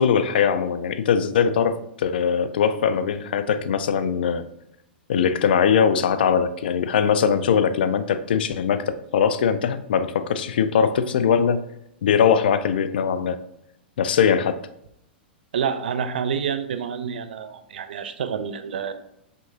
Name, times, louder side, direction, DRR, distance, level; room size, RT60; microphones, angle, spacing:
voice 1, 0.0-4.4 5.1-8.8 9.1-11.6 12.0-13.4 14.0-14.6, left 7 dB, 65° left, 12 dB, 0.4 m, -21 dB
voice 2, 15.5-18.9, right 7 dB, 65° right, 10 dB, 0.4 m, -28 dB
5.2 x 3.5 x 2.7 m, 0.79 s
figure-of-eight pair, 100°, 6 cm